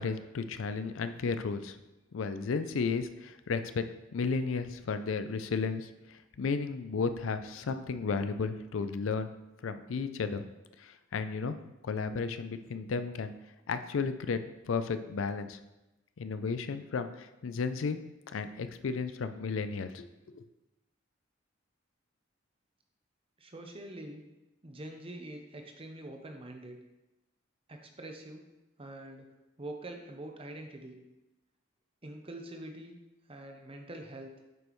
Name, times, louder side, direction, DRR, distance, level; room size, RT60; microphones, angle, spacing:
voice 1, 0.0-1.8 2.1-3.9 4.1-9.3 9.6-10.4 10.8-11.6 11.8-13.3 13.7-15.6 16.2-18.0 18.3-20.1 20.3-20.4, left 4 dB, 90° left, 10 dB, 0.4 m, -33 dB
voice 2, 23.4-24.2 24.6-26.8 27.7-28.4 28.8-29.3 29.6-31.0 32.0-33.0 33.3-34.3, right 1 dB, 30° right, 3 dB, 0.8 m, -44 dB
7.7 x 5.3 x 3.1 m, 0.97 s
head